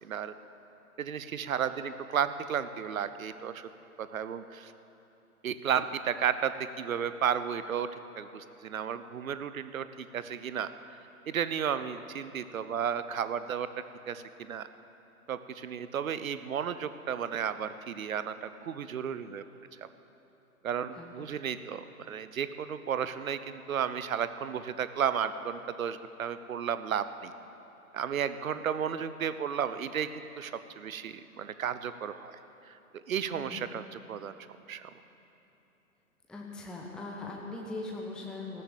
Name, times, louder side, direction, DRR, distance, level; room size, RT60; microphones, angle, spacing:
voice 1, 0.0-0.3 1.0-3.7 4.0-4.7 5.4-7.9 8.2-10.7 11.3-13.7 14.1-14.7 15.3-19.4 19.8-19.9 20.6-27.3 27.9-32.4 32.6-34.3 34.7-34.9, right 8 dB, 65° right, 12 dB, 0.9 m, -33 dB
voice 2, 33.3-33.7 36.3-38.6, left 2 dB, ahead, -2 dB, 0.9 m, -40 dB
15.0 x 12.5 x 7.3 m, 3.0 s
figure-of-eight pair, 120°, 44 cm